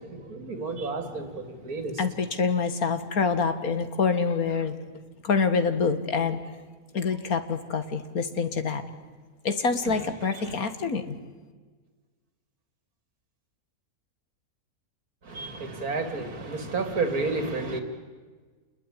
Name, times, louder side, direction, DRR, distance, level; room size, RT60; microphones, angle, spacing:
voice 1, 0.0-1.9 9.9-10.0 10.4-10.5 15.3-17.8, right 3 dB, 80° right, 7 dB, 3.1 m, -31 dB
voice 2, 2.0-4.8 5.2-6.4 6.9-8.8 9.4-11.2, left 5 dB, 80° left, 10 dB, 2.2 m, -26 dB
28.5 x 21.0 x 10.0 m, 1.4 s
omnidirectional pair, 1.5 m